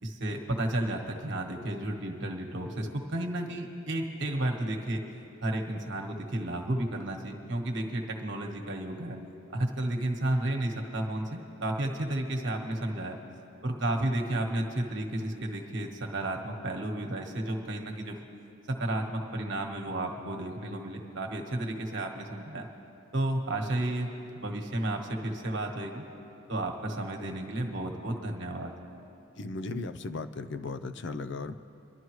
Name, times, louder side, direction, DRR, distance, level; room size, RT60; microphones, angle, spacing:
voice 1, 0.0-5.0 5.4-9.2 9.5-13.2 13.6-18.2 18.7-22.7 23.1-26.0 26.5-28.7, right 1 dB, 55° right, 1 dB, 1.3 m, -32 dB
voice 2, 29.4-31.5, left 3 dB, 55° left, 10 dB, 0.5 m, -36 dB
25.5 x 11.5 x 3.2 m, 2.7 s
head